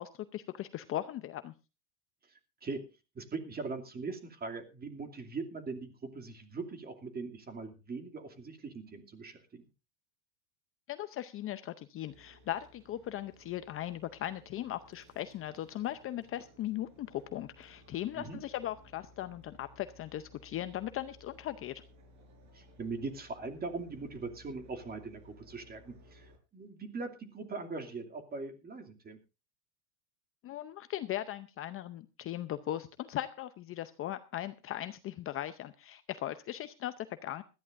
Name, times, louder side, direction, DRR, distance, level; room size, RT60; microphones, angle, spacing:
voice 1, 0.0-1.5 10.9-21.8 30.4-37.4, left 13 dB, 30° left, 11 dB, 0.7 m, -38 dB
voice 2, 3.1-9.6 18.1-18.4 22.5-29.2, right 4 dB, 20° right, 6 dB, 2.6 m, -41 dB
sound 1, 12.1-26.4, left 1 dB, 40° right, 5.2 m, -59 dB
19.5 x 14.0 x 2.6 m, 0.30 s
supercardioid pair, 130°, 46 cm